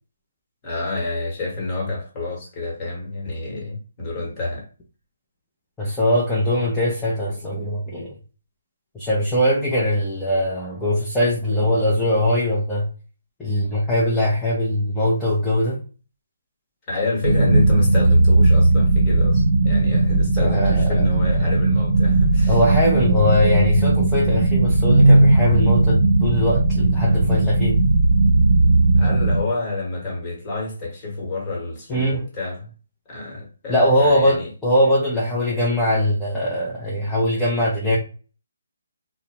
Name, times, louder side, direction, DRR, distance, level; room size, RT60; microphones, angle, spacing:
voice 1, 0.6-4.7 16.9-22.6 29.0-32.7 33.1-34.5, left 2 dB, 25° left, 1.2 m, -28 dB
voice 2, 5.8-8.1 8.9-12.9 13.4-15.8 20.4-21.0 22.5-27.8 31.9-32.3 33.7-38.0, left 1 dB, 5° left, 0.6 m, -21 dB
sound 1, 17.2-29.4, right 2 dB, 55° right, 0.6 m, -17 dB
2.5 x 2.0 x 2.9 m
hypercardioid pair, 155°, 0 cm